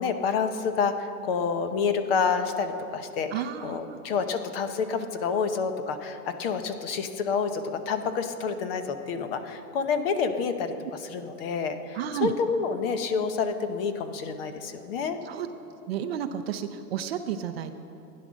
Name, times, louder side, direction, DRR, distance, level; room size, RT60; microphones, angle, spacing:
voice 1, 0.0-3.3 3.6-10.7 11.0-15.2, left 5 dB, 35° left, 8 dB, 0.9 m, -28 dB
voice 2, 3.3-4.0 11.9-12.3 15.2-15.5 15.9-17.8, right 9 dB, 40° right, 8 dB, 0.6 m, -31 dB
16.0 x 10.5 x 6.3 m, 2.8 s
hypercardioid pair, 155°, 49 cm